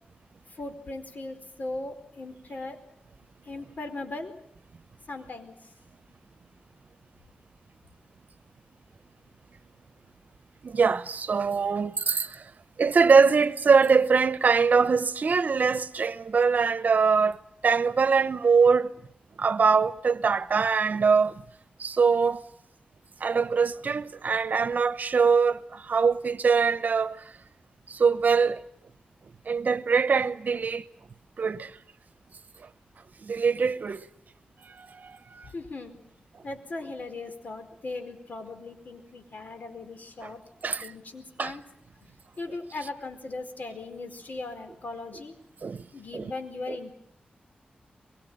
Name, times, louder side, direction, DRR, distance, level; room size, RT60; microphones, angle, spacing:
voice 1, 0.5-2.8 3.4-4.3 5.1-5.7 35.4-36.0 36.4-41.6 42.0-45.4 45.9-46.9, left 2 dB, 65° left, 4.5 m, -38 dB
voice 2, 10.6-12.5 12.8-18.9 19.4-21.4 21.8-22.4 23.2-27.2 27.9-28.6 29.5-30.9 31.4-31.7 33.2-34.1 34.7-35.5 40.2-40.3 40.6-40.9 41.4-41.5 45.6-45.8 46.1-46.3 46.7-46.8, right 5 dB, 65° right, 1.0 m, -23 dB
23.0 x 23.0 x 8.9 m
wide cardioid pair, 75°, 3 cm